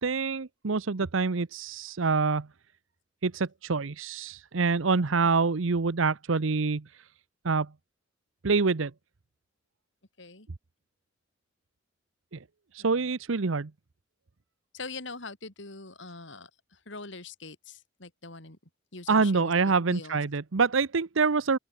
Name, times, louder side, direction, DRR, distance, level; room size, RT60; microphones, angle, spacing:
voice 1, 0.0-2.5 3.2-7.1 7.4-7.7 8.4-8.9 12.3-12.4 12.7-13.7 19.1-21.6, right 4 dB, 85° right, 0.8 m, -26 dB
voice 2, 5.2-5.5 10.2-10.5 12.8-13.1 14.7-18.6 18.9-20.2, left 3 dB, 65° left, 3.7 m, -43 dB
open air
head